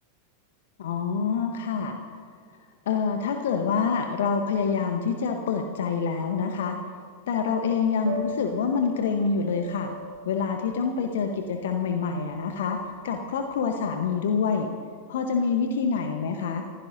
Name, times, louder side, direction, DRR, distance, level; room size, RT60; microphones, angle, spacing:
voice 1, 0.8-1.9 2.9-6.8 7.3-9.9 10.2-12.8 13.0-14.7 15.1-16.6, left 5 dB, 60° left, 5 dB, 1.1 m, -26 dB
Piano, 8.0-13.9, right 2 dB, 65° right, 4.4 m, -41 dB
29.5 x 15.5 x 2.7 m, 2.1 s
figure-of-eight pair, 90°, 0 cm